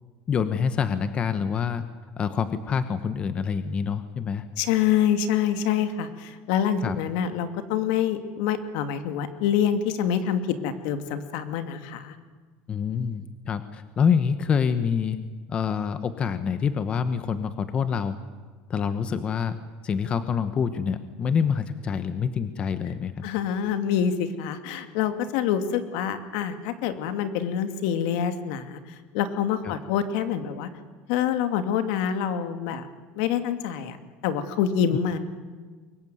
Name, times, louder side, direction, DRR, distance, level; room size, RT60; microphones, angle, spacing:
voice 1, 0.3-1.8 2.2-4.5 6.8-7.0 12.7-15.2 15.5-18.2 18.7-19.6 19.8-23.1 29.6-29.7 34.9-35.0, left 6 dB, 25° left, 11 dB, 1.1 m, -26 dB
voice 2, 4.6-12.1 23.2-28.8 29.1-30.7 31.1-32.9 33.1-34.0 34.2-35.2, left 8 dB, 70° left, 8 dB, 2.6 m, -26 dB
24.5 x 22.0 x 9.3 m, 1.4 s
cardioid pair, 165°, 4 cm